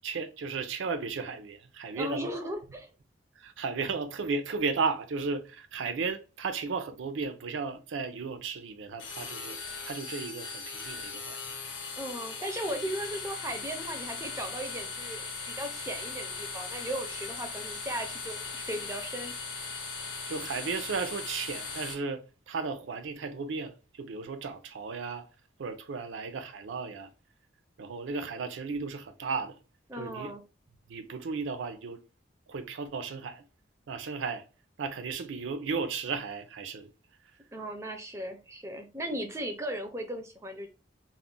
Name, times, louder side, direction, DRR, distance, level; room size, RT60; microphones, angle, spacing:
voice 1, 0.0-2.3 3.4-9.6 9.8-11.5 20.3-25.2 25.6-27.1 27.8-29.6 30.0-30.3 30.9-32.0 32.5-33.4 33.9-34.5 34.8-36.9, right 4 dB, 85° right, 0.4 m, -34 dB
voice 2, 1.9-2.9 12.0-19.3 29.9-30.4 37.5-40.7, right 1 dB, 15° right, 0.4 m, -37 dB
sound 1, 9.0-21.9, left 4 dB, 75° left, 0.7 m, -39 dB
2.3 x 2.0 x 3.6 m
head